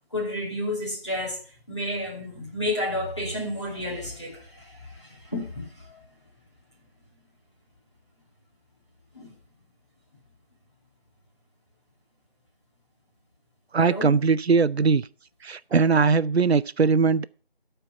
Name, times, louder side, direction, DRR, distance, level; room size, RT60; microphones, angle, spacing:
voice 1, 0.1-1.4 1.7-6.0 9.1-9.3 13.8-14.2, left 1 dB, 30° left, 2.4 m, -31 dB
voice 2, 13.7-15.1 15.4-17.2, right 5 dB, 85° right, 0.5 m, -20 dB
12.5 x 4.5 x 5.8 m
figure-of-eight pair, 175°, 31 cm